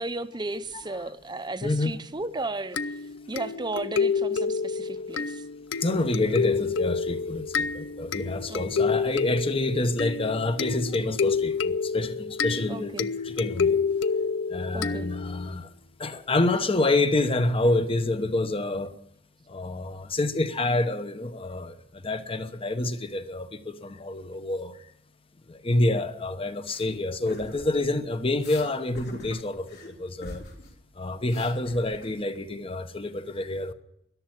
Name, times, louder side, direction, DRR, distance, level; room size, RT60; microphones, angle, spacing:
voice 1, 0.0-5.5 8.5-8.9 12.7-13.1 14.7-15.1, right 2 dB, 25° right, 0.7 m, -35 dB
voice 2, 1.6-1.9 5.8-12.9 13.2-13.8 14.5-15.7 16.0-18.9 19.5-24.7 25.5-30.4 31.0-33.7, left 2 dB, 30° left, 1.0 m, -27 dB
sound 1, 2.8-15.5, left 5 dB, 80° left, 0.5 m, -28 dB
sound 2, 26.6-26.8 27.3-27.9 28.4-28.7 28.9-29.9 30.2-30.7 31.0-32.4, left 1 dB, 55° left, 4.2 m, -43 dB
14.0 x 11.5 x 8.8 m
head